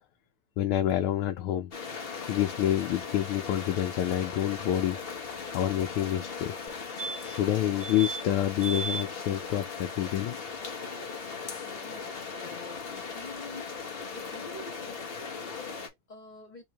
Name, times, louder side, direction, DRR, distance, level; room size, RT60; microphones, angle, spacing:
voice 1, 0.6-1.7 2.3-5.0 5.5-6.5 7.2-10.4, left 12 dB, 80° left, 1.5 m, -28 dB
sound 1, 1.7-15.9, left 5 dB, 60° left, 0.6 m, -38 dB
sound 2, 6.7-6.8 7.0-7.5 7.8-8.2 8.6-9.0 11.4-11.5 11.7-11.8, right 4 dB, 85° right, 0.6 m, -35 dB
voice 2, 11.6-16.6, left 2 dB, 30° left, 1.0 m, -47 dB
4.0 x 3.0 x 2.9 m
omnidirectional pair, 2.4 m